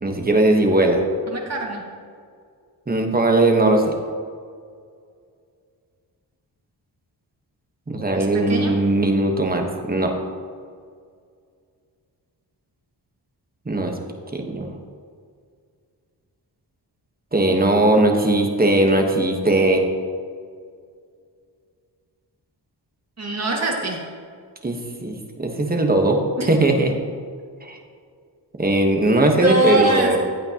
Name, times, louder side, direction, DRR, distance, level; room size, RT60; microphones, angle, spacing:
voice 1, 0.0-1.0 2.9-3.9 7.9-10.1 13.6-13.9 14.3-14.7 17.3-19.8 24.6-26.2 26.5-26.9 27.6-27.8 28.6-30.2, right 2 dB, 20° right, 2 dB, 1.2 m, -19 dB
voice 2, 1.3-1.8 8.1-8.8 23.2-24.0 26.4-26.5 29.4-30.2, right 2 dB, 40° right, -1 dB, 1.9 m, -23 dB
15.0 x 8.8 x 2.9 m, 2.1 s
wide cardioid pair, 140°, 41 cm